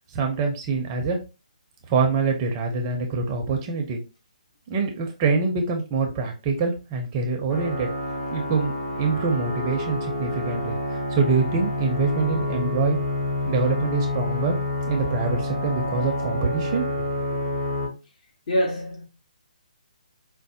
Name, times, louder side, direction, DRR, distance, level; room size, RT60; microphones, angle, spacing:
voice 1, 0.1-1.2 1.9-4.0 4.7-7.9 8.3-13.0 13.5-14.6 14.8-17.1, right 4 dB, 25° right, 0.6 m, -25 dB
sound 1, 7.5-17.9, left 1 dB, 30° left, 1.6 m, -28 dB
voice 2, 18.5-19.1, equal, 50° left, 1.5 m, -24 dB
5.0 x 2.1 x 2.7 m
hypercardioid pair, 150°, 4 cm